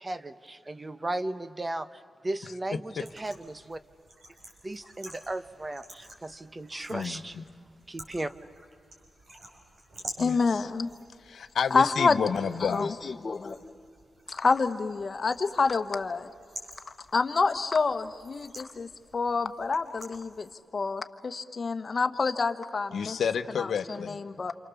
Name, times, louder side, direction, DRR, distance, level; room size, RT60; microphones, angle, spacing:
voice 1, 0.0-3.8 4.6-7.3 7.9-8.3, right 2 dB, 25° right, 12 dB, 0.9 m, -36 dB
sound 1, 3.0-20.5, right 1 dB, 65° right, 5.8 m, -50 dB
voice 2, 6.9-7.5 10.2-10.7 11.2-12.9 22.9-24.2, left 7 dB, 85° left, 9 dB, 0.9 m, -31 dB
voice 3, 10.2-10.9 11.7-12.2 12.6-12.9 13.2-13.6 14.3-16.3 16.9-23.2 23.6-24.5, left 4 dB, 50° left, 9 dB, 1.2 m, -28 dB
28.0 x 28.0 x 7.1 m, 2.3 s
cardioid pair, 80°, 0 cm